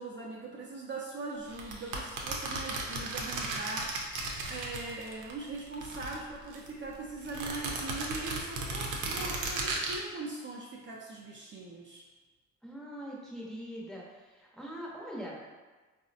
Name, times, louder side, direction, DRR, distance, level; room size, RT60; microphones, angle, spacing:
voice 1, 0.0-12.1, right 3 dB, 40° right, -3 dB, 0.5 m, -41 dB
sound 1, 1.5-5.3 5.6-6.7 7.2-10.0, right 3 dB, 80° right, 0.6 m, -35 dB
voice 2, 12.6-15.4, equal, ahead, -5 dB, 0.7 m, -42 dB
3.7 x 2.1 x 2.6 m, 1.3 s
cardioid pair, 90°, 30 cm